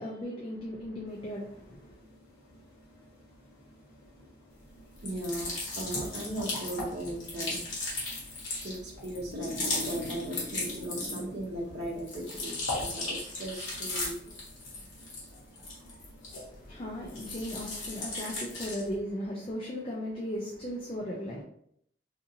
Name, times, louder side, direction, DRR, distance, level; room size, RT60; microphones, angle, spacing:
voice 1, 0.0-2.0 16.5-21.4, equal, 25° left, 0.4 m, -37 dB
sound 1, 1.0-18.1, left 1 dB, 65° left, 1.0 m, -47 dB
sound 2, 5.0-11.4 11.8-16.7 17.1-18.9, left 2 dB, 90° left, 1.2 m, -37 dB
voice 2, 5.0-7.6 8.5-14.1 15.3-16.0, right 1 dB, 60° right, 0.7 m, -37 dB
2.8 x 2.6 x 2.6 m
head